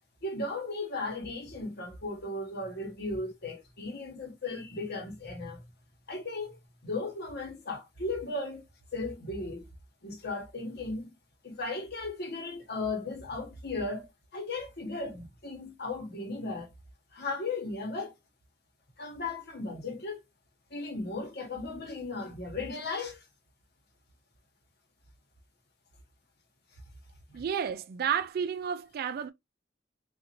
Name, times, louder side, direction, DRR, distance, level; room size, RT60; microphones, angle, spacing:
voice 1, 0.2-5.6 6.1-8.6 8.9-9.7 10.0-11.1 11.4-16.7 17.1-18.2 19.0-20.2 20.7-23.3 27.3-27.4, left 2 dB, 60° left, 1.1 m, -36 dB
voice 2, 27.3-29.3, right 7 dB, 55° right, 0.3 m, -31 dB
3.9 x 2.4 x 2.9 m
head